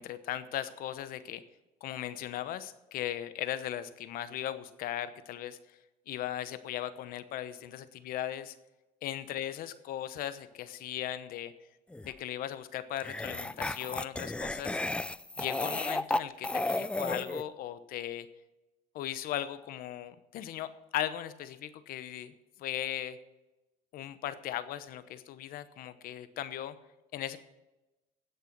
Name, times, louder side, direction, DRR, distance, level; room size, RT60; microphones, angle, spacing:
voice 1, 0.0-1.4 1.8-5.6 6.1-8.6 9.0-11.5 12.0-14.8 15.4-18.3 18.9-22.3 22.6-23.2 23.9-26.8 27.1-27.4, left 12 dB, 65° left, 13 dB, 1.0 m, -38 dB
sound 1, 11.9-12.1 13.0-17.4, left 2 dB, 5° left, 0.4 m, -33 dB
17.0 x 6.7 x 6.0 m, 1.0 s
cardioid pair, 100°, 16 cm